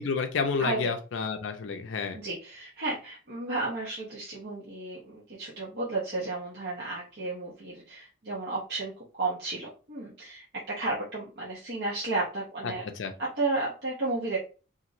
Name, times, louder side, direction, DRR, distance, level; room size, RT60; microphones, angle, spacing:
voice 1, 0.0-2.2 12.6-13.1, left 5 dB, 70° left, 6 dB, 0.4 m, -30 dB
voice 2, 0.6-0.9 2.1-12.8 13.2-14.4, right 2 dB, 55° right, -6 dB, 0.7 m, -33 dB
3.0 x 2.5 x 2.5 m, 0.35 s
head